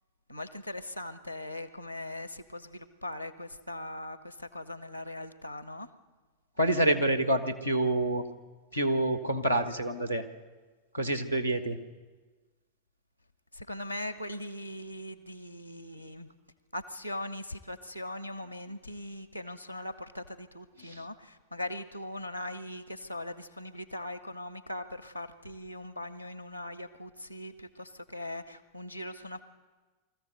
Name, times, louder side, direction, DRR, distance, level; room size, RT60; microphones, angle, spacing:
voice 1, 0.3-5.9 13.5-16.3 16.7-29.4, left 1 dB, 90° right, 13 dB, 1.1 m, -40 dB
voice 2, 6.6-8.2 8.7-10.2 10.9-11.8 20.8-21.0, right 1 dB, 85° left, 7 dB, 1.6 m, -27 dB
23.0 x 14.5 x 8.0 m, 1.3 s
figure-of-eight pair, 90°, 0 cm